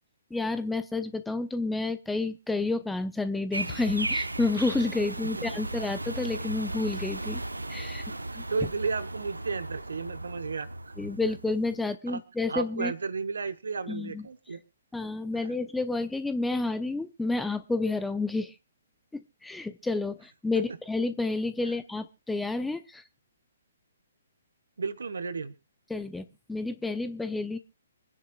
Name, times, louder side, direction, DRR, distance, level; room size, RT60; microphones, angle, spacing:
voice 1, 0.3-7.4 7.7-8.0 8.3-8.4 11.0-12.9 13.9-14.3 14.9-18.5 19.1-23.0 25.9-27.6, left 3 dB, 5° left, 11 dB, 0.8 m, -30 dB
sound 1, 3.5-11.8, right 2 dB, 90° right, 1.0 m, -36 dB
voice 2, 8.5-10.9 12.1-12.2 12.5-14.6 24.8-25.5, right 4 dB, 70° right, 15 dB, 1.4 m, -33 dB
25.5 x 10.0 x 2.4 m, 0.29 s
figure-of-eight pair, 130°, 0 cm